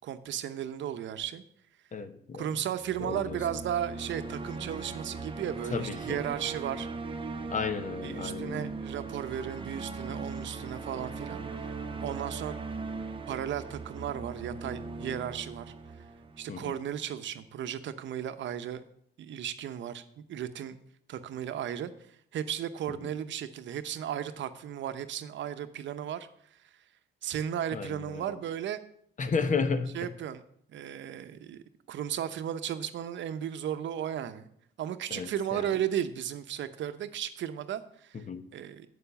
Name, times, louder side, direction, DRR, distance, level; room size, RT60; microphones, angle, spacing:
voice 1, 0.0-1.4 2.4-6.9 8.0-11.7 12.0-12.5 13.3-15.7 16.4-18.8 19.2-20.8 21.1-21.9 22.3-26.6 27.2-28.8 29.9-30.4 30.7-34.5 34.8-38.2 38.5-38.9, right 10 dB, 70° right, 0.8 m, -35 dB
voice 2, 1.9-2.5 3.0-3.4 5.7-6.2 7.5-8.7 16.5-16.7 27.7-28.4 29.2-30.0 35.1-35.7 38.1-38.4, left 5 dB, 40° left, 1.0 m, -33 dB
sound 1, 2.8-17.0, right 4 dB, 25° right, 0.9 m, -39 dB
8.3 x 7.0 x 6.8 m
cardioid pair, 90°, 20 cm